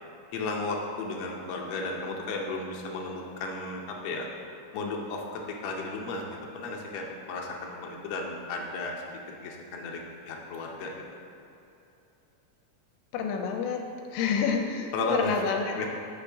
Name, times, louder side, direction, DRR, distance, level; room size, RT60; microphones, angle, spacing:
voice 1, 0.3-4.3 4.7-6.2 6.5-8.9 9.4-11.0 14.9-15.4 15.8-15.9, left 3 dB, 70° left, -1 dB, 1.8 m, -34 dB
voice 2, 13.1-13.9 14.1-15.8, left 6 dB, 90° left, 3 dB, 2.0 m, -28 dB
6.9 x 4.9 x 3.4 m, 2.8 s
omnidirectional pair, 3.3 m